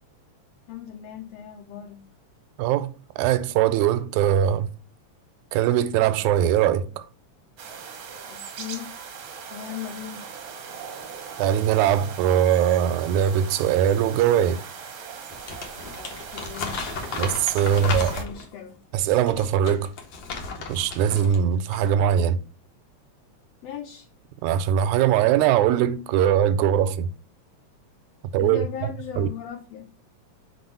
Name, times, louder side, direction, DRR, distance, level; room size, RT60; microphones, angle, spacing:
voice 1, 0.7-2.1 8.2-9.0 9.5-10.3 15.9-16.9 17.6-18.8 23.6-24.1 28.4-29.9, left 10 dB, 80° left, 1.5 m, -38 dB
voice 2, 2.6-2.9 3.2-4.7 5.5-7.1 11.4-14.6 17.2-18.1 18.9-19.9 20.7-22.4 24.4-27.1 28.3-28.7 29.2-29.3, right 10 dB, 85° right, 2.0 m, -21 dB
sound 1, 7.6-18.2, right 6 dB, 60° right, 1.3 m, -39 dB
Crumpling crinkling, 15.3-18.5 19.1-21.4 21.7-21.9, left 4 dB, 60° left, 1.3 m, -34 dB
4.3 x 4.2 x 5.4 m
omnidirectional pair, 3.3 m